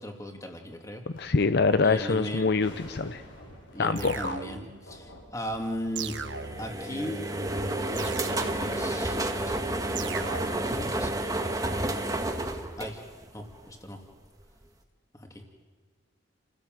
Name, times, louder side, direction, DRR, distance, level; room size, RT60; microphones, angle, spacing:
voice 1, 0.0-1.0 1.8-2.5 3.7-6.1 6.6-11.4 12.8-13.0 13.3-14.0 15.2-15.4, equal, 15° left, 3 dB, 2.6 m, -38 dB
sound 1, 1.1-6.6, equal, 90° left, 8.0 m, -49 dB
voice 2, 1.1-3.2 3.8-4.4, left 4 dB, 60° left, 11 dB, 0.6 m, -25 dB
sound 2, 4.0-4.9 6.0-6.9 8.0-8.9 10.0-10.8, right 5 dB, 80° right, 1.3 m, -38 dB
sound 3, 6.2-13.5, right 1 dB, 20° right, 1.5 m, -30 dB
29.5 x 16.5 x 7.7 m, 1.5 s
head